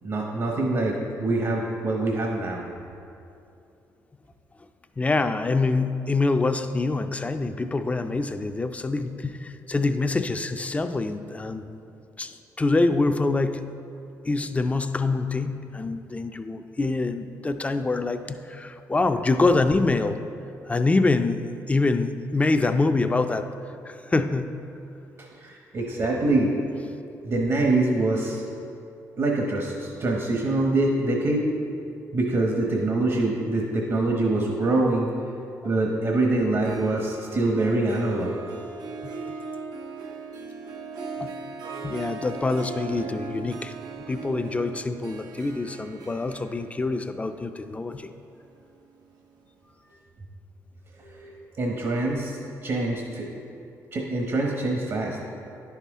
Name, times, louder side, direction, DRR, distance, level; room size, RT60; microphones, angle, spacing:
voice 1, 0.0-2.6 25.2-26.7 27.2-28.4 29.2-31.5 32.1-35.1 35.6-38.3 51.0-53.3 53.9-55.2, right 2 dB, 55° right, 0 dB, 1.0 m, -25 dB
voice 2, 5.0-11.8 12.2-13.7 14.2-20.2 20.7-23.5 23.8-24.5 39.0-39.1 41.2-41.3 41.8-43.7 44.0-48.1, left 3 dB, 20° left, 8 dB, 0.4 m, -25 dB
Harp, 36.5-49.4, right 4 dB, 75° right, 0.7 m, -39 dB
10.5 x 5.8 x 3.6 m, 2.7 s
cardioid pair, 80°, 7 cm